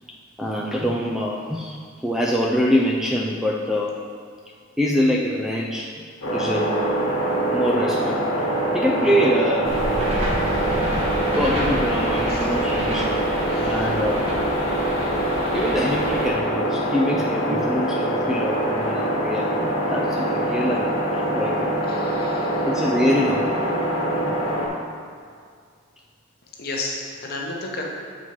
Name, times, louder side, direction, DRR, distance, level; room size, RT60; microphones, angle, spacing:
voice 1, 0.4-4.0 4.8-5.9 6.2-6.9 7.5-8.2 8.7-9.8 11.3-13.1 13.6-14.3 15.5-21.0 21.3-21.7 22.7-23.7 24.2-24.4, equal, ahead, -2 dB, 0.3 m, -24 dB
sound 1, 6.2-24.7, right 1 dB, 80° left, 1.4 m, -24 dB
sound 2, 9.6-16.3, equal, 30° right, 1.2 m, -29 dB
voice 2, 10.2-10.7 12.3-12.5 13.5-13.9 21.9-22.7 26.5-27.8, left 2 dB, 45° left, -1 dB, 0.9 m, -34 dB
7.4 x 4.3 x 4.5 m, 2.1 s
head